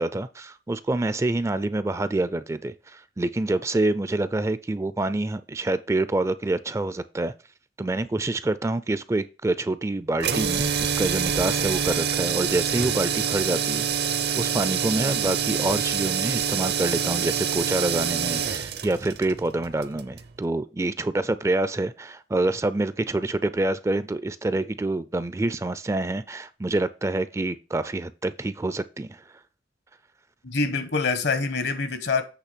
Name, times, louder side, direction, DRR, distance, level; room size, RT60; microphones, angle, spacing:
voice 1, 0.0-7.3 7.8-14.1 14.4-29.2, right 2 dB, 15° right, 0.4 m, -27 dB
sound 1, 10.2-20.3, right 7 dB, 65° right, 0.7 m, -26 dB
voice 2, 30.4-32.2, left 4 dB, 75° left, 1.1 m, -25 dB
8.2 x 3.4 x 6.1 m
head